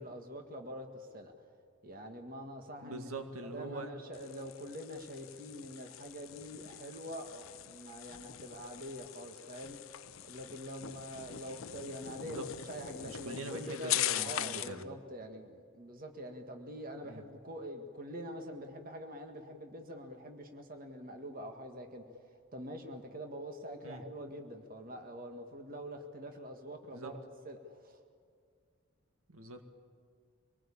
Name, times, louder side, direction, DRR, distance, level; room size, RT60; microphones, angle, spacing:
voice 1, 0.0-1.3 1.8-3.1 3.5-9.8 10.2-28.0, equal, 40° right, 4 dB, 1.9 m, -45 dB
voice 2, 2.8-3.9 12.2-12.4 13.1-14.9 17.0-17.2 23.8-24.0 26.9-27.1 29.3-29.7, right 2 dB, 85° right, 6 dB, 2.0 m, -43 dB
sound 1, 4.1-14.8, left 13 dB, 75° left, 0.6 m, -41 dB
25.5 x 19.5 x 8.7 m, 2.2 s
head